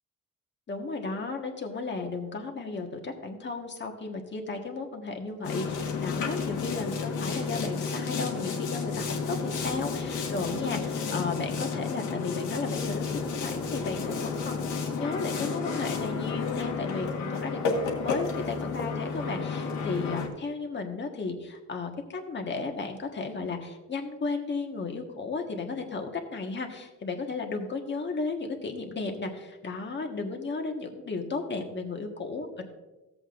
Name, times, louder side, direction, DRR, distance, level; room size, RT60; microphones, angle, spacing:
voice 1, 0.7-32.6, left 4 dB, 35° left, 3 dB, 1.5 m, -34 dB
Boat Water vehicle, 5.4-20.3, left 5 dB, 85° left, 1.6 m, -31 dB
14.0 x 7.8 x 2.6 m, 1.1 s
cardioid pair, 90°, 30 cm